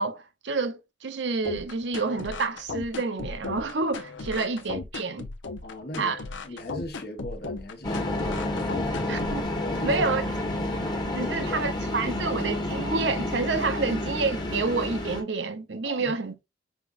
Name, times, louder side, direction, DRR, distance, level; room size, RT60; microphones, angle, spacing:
voice 1, 0.0-5.3 6.0-6.2 9.1-9.5 9.8-10.2 11.1-16.4, right 3 dB, 70° right, 0.7 m, -28 dB
sound 1, 1.4-9.4, left 3 dB, 80° left, 0.7 m, -36 dB
voice 2, 5.6-6.1 6.4-8.6 9.6-10.1 11.2-11.6 15.8-16.2, left 1 dB, 55° left, 1.1 m, -38 dB
sound 2, 7.8-15.2, left 1 dB, 25° left, 1.1 m, -30 dB
5.0 x 3.6 x 2.4 m
head